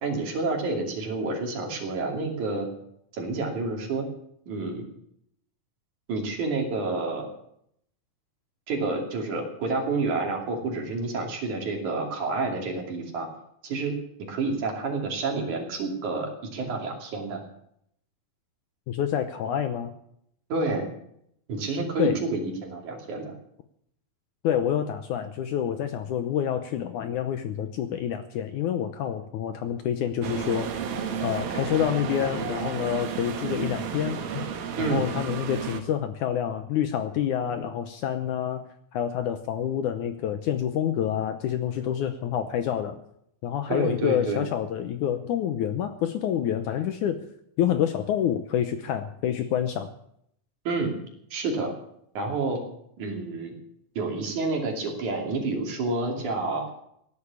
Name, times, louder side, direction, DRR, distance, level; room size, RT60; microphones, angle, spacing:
voice 1, 0.0-2.7 3.1-4.1 4.5-4.8 6.1-7.3 8.7-13.3 13.6-13.9 14.3-17.4 20.5-20.9 21.5-23.4 34.8-35.1 43.7-44.4 50.7-51.0 51.3-51.7 52.2-52.6 53.0-53.5 54.0-56.7, right 3 dB, 55° right, 2 dB, 4.1 m, -29 dB
voice 2, 18.9-19.9 22.0-22.2 24.4-30.8 31.2-34.5 34.8-38.6 38.9-43.0 43.4-47.2 47.6-49.9, left 9 dB, 70° left, 9 dB, 2.0 m, -27 dB
sound 1, 30.2-35.8, right 7 dB, 80° right, 3.5 m, -32 dB
16.5 x 11.5 x 7.1 m, 0.71 s
omnidirectional pair, 4.2 m